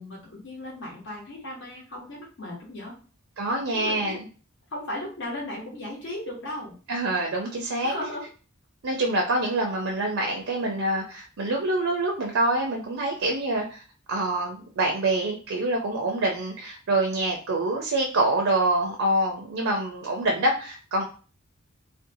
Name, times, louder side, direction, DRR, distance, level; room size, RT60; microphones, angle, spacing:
voice 1, 0.0-2.9 3.7-4.2 4.7-6.7 7.8-8.3, left 1 dB, 60° left, -4 dB, 0.9 m, -36 dB
voice 2, 3.4-4.3 6.9-7.9 8.8-13.8 14.1-21.0, right 2 dB, 70° right, 1 dB, 0.5 m, -26 dB
2.6 x 2.2 x 2.6 m, 0.38 s
head